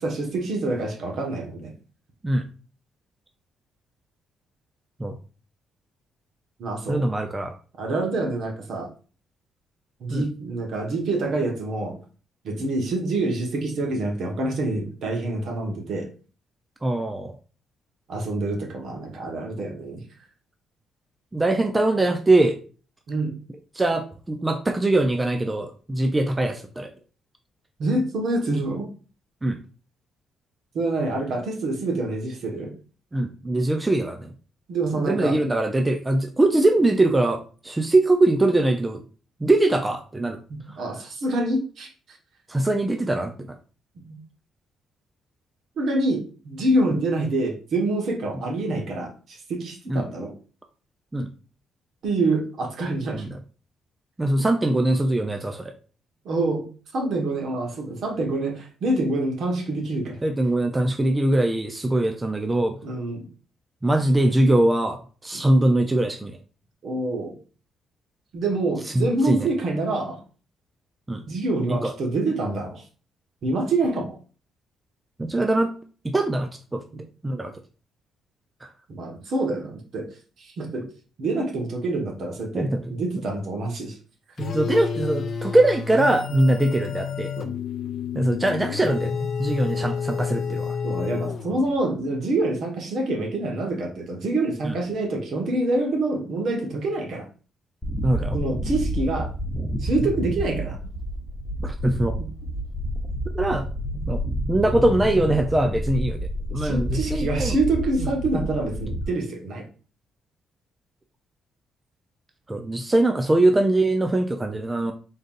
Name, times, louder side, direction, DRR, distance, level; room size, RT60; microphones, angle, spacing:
voice 1, 0.0-1.7 6.6-7.0 7.8-8.9 10.0-12.0 12.4-16.1 18.1-20.0 23.1-23.3 27.8-28.9 30.7-32.7 34.7-35.4 40.8-42.2 44.1-44.2 45.8-50.3 52.0-53.3 56.2-56.7 56.9-60.2 62.8-63.3 65.3-65.5 66.8-67.3 68.3-70.2 71.3-72.8 73.4-74.1 78.9-80.1 80.4-80.8 81.2-84.0 87.4-87.5 90.8-97.3 98.3-99.3 99.8-100.8 102.2-102.3 106.5-109.6, right 2 dB, 65° right, 1 dB, 1.3 m, -26 dB
voice 2, 6.9-7.5 10.1-10.3 16.8-17.3 21.3-22.6 23.7-26.9 29.4-29.6 33.1-34.3 35.0-39.0 39.4-40.4 42.5-43.6 49.9-50.1 51.1-51.3 53.1-53.4 54.2-55.7 60.2-62.8 63.8-66.4 68.9-69.5 71.1-71.2 71.7-71.9 75.2-75.7 76.0-76.8 77.2-77.5 78.6-78.7 82.5-82.8 84.4-87.3 88.1-90.8 94.6-94.8 98.0-98.4 101.6-102.1 103.3-103.7 104.1-104.2 104.5-106.2 106.5-107.6 108.0-108.1 112.5-114.9, right 1 dB, 15° right, 5 dB, 0.5 m, -22 dB
sound 1, 84.4-91.8, left 6 dB, 55° left, 0.5 m, -30 dB
sound 2, 97.8-109.0, equal, 10° left, 0.8 m, -29 dB
4.0 x 3.8 x 2.5 m, 0.37 s
cardioid pair, 90°, 0 cm